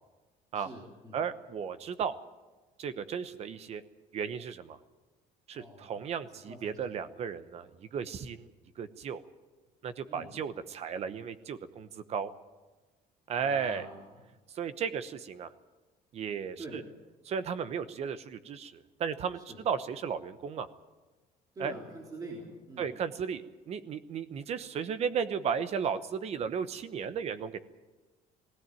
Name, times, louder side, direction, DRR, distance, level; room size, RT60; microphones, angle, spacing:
voice 1, 0.5-1.2 5.5-5.9 6.4-6.9 10.1-10.3 13.3-14.2 16.6-16.8 19.3-19.6 21.5-22.9, right 1 dB, 20° right, -2 dB, 3.4 m, -45 dB
voice 2, 1.1-2.1 2.8-3.8 4.1-4.8 5.5-8.5 8.8-9.2 9.8-12.3 13.3-13.9 14.5-15.5 16.1-16.8 17.2-19.4 19.6-20.7 21.6-21.7 22.8-27.6, right 7 dB, 40° right, 13 dB, 1.0 m, -35 dB
19.0 x 17.5 x 9.2 m, 1.2 s
cardioid pair, 170°, 16 cm